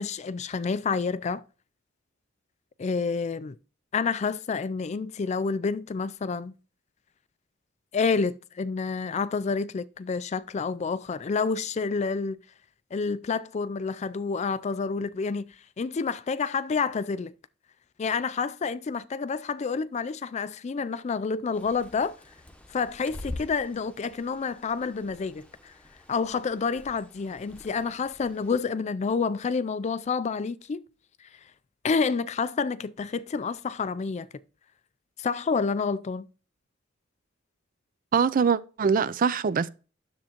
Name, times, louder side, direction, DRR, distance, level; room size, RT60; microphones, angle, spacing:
voice 1, 0.0-1.4 2.8-3.6 3.9-6.5 7.9-12.4 12.9-15.4 15.8-17.3 18.0-22.2 22.7-25.7 26.1-30.8 31.8-34.3 35.2-36.3, left 5 dB, 35° left, 0.3 m, -29 dB
Bird, 21.5-28.6, left 1 dB, 5° left, 1.0 m, -45 dB
voice 2, 38.1-39.7, right 6 dB, 45° right, 0.4 m, -23 dB
10.0 x 7.3 x 2.9 m
head